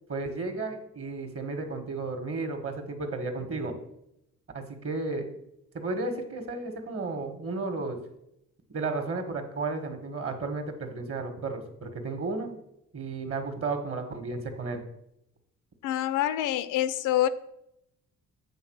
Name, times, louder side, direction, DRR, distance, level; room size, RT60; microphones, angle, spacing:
voice 1, 0.1-3.7 4.5-5.3 5.7-8.0 8.7-12.6 12.9-14.8, right 3 dB, 45° right, 1.5 m, -33 dB
voice 2, 15.8-17.3, left 12 dB, 90° left, 0.6 m, -26 dB
8.0 x 3.8 x 6.4 m
cardioid pair, 90°, 30 cm